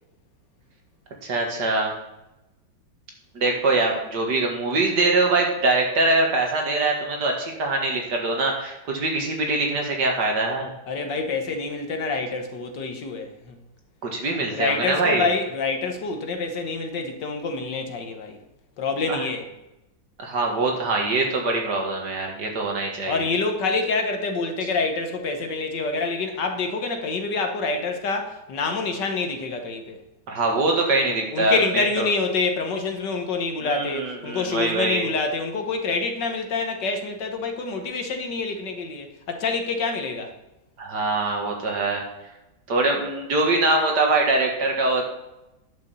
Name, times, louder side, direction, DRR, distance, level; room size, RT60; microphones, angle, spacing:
voice 1, 1.2-2.0 3.3-10.7 14.0-15.3 19.1-19.2 20.2-23.3 30.3-32.1 33.6-35.1 40.8-42.0 42.7-45.1, right 2 dB, 60° right, 2.3 m, -23 dB
voice 2, 10.9-13.6 14.3-18.4 18.8-19.4 23.1-30.0 31.3-40.3, left 4 dB, 65° left, 1.8 m, -27 dB
10.5 x 6.1 x 6.9 m
omnidirectional pair, 2.1 m